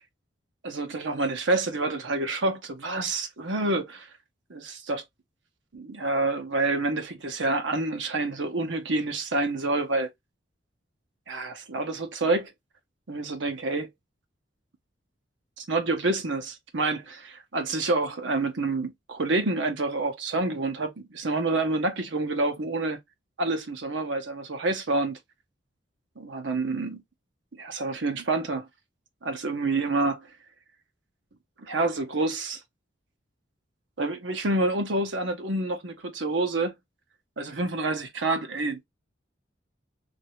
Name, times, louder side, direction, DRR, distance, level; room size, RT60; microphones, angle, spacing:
voice 1, 0.6-4.1 4.5-5.0 5.7-10.1 11.3-12.5 13.1-13.9 15.6-23.0 23.4-25.2 26.2-27.0 27.6-28.7 29.2-30.3 31.6-32.6 34.0-36.7 37.4-38.8, right 2 dB, 70° right, 0.8 m, -28 dB
3.2 x 2.6 x 3.0 m
head